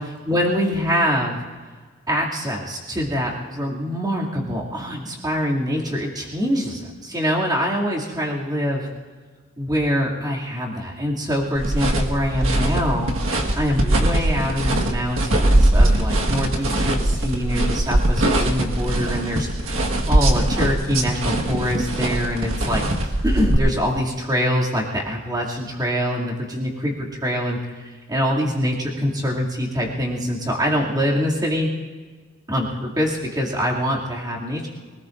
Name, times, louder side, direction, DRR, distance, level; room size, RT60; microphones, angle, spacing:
voice 1, 0.0-1.4 2.1-8.9 9.6-19.5 20.1-27.6 28.1-31.7 32.5-34.7, equal, 20° right, -3 dB, 2.6 m, -24 dB
sound 1, 11.5-23.5, right 1 dB, 75° right, 1.6 m, -21 dB
24.5 x 19.0 x 2.6 m, 1.5 s
head